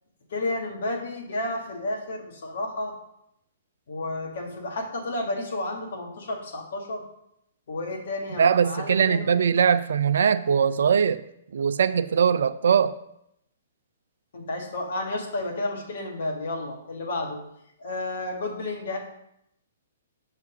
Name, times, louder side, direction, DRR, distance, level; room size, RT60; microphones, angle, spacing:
voice 1, 0.3-2.9 3.9-7.0 7.7-9.5 14.3-17.4 17.8-19.0, left 2 dB, 60° left, 1 dB, 1.4 m, -31 dB
voice 2, 8.3-11.2 11.5-13.0, right 7 dB, 60° right, 13 dB, 0.3 m, -21 dB
6.5 x 3.5 x 4.9 m, 0.77 s
figure-of-eight pair, 120°, 0 cm